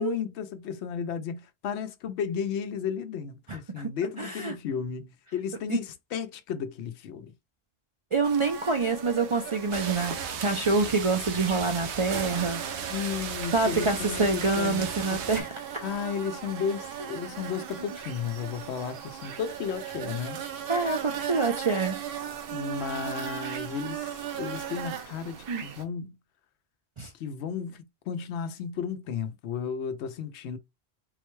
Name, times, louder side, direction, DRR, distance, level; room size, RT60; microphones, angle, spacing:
voice 1, 0.0-7.3 12.9-15.3 15.8-20.4 22.5-26.2 27.1-30.6, left 7 dB, 80° left, 0.9 m, -34 dB
voice 2, 3.5-3.9 4.2-4.5 5.7-5.8 8.1-10.1 10.4-12.9 13.5-15.5 20.7-22.0 25.5-25.6 27.0-27.1, right 3 dB, 45° right, 0.4 m, -26 dB
sound 1, 8.2-25.8, right 9 dB, 60° right, 0.8 m, -38 dB
sound 2, 9.7-15.4, right 6 dB, 85° right, 1.0 m, -36 dB
3.9 x 2.2 x 3.0 m
omnidirectional pair, 1.1 m